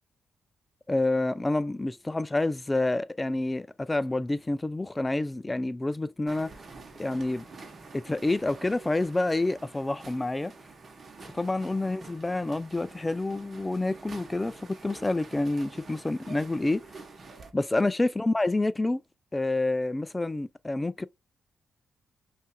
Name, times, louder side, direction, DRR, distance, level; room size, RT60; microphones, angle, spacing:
voice 1, 0.9-6.5 7.0-7.5 7.9-10.5 11.3-16.8 17.5-19.0 19.3-21.1, left 2 dB, 20° left, 0.3 m, -28 dB
sound 1, 6.3-17.5, right 3 dB, 45° right, 0.9 m, -48 dB
5.4 x 2.5 x 2.2 m
cardioid pair, 80°, 0 cm